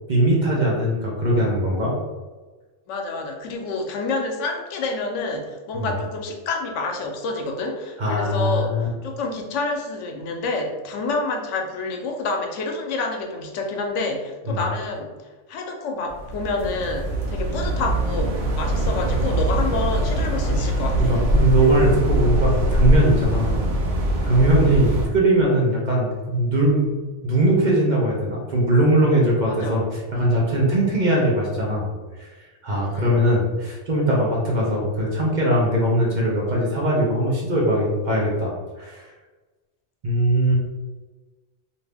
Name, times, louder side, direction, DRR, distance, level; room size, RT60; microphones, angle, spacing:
voice 1, 0.1-1.9 5.7-5.9 8.0-8.9 14.5-14.6 21.0-23.5 24.2-26.9 27.2-31.9 32.2-32.3 32.6-38.5 38.8-39.0 40.0-40.6, right 1 dB, 45° right, -3 dB, 0.8 m, -20 dB
voice 2, 2.9-15.1 15.5-21.1 24.7-24.8 29.4-29.8 32.8-33.2, left 3 dB, 90° left, 2 dB, 0.9 m, -28 dB
sound 1, 16.1-25.1, right 1 dB, 85° right, 1.0 m, -22 dB
2.7 x 2.6 x 3.3 m, 1.3 s
omnidirectional pair, 1.2 m